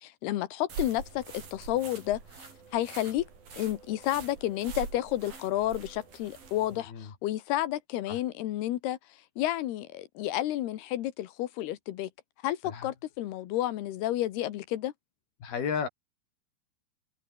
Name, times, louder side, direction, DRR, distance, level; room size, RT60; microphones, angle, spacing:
voice 1, 0.0-2.5 2.7-3.3 3.5-9.0 9.4-12.1 12.4-14.9, left 14 dB, 65° left, 2.8 m, -31 dB
sound 1, 0.7-6.8, right 5 dB, 45° right, 7.1 m, -44 dB
voice 2, 6.7-7.1 8.1-8.2 12.6-12.9 15.4-15.9, left 6 dB, 50° left, 6.6 m, -34 dB
omnidirectional pair, 5.8 m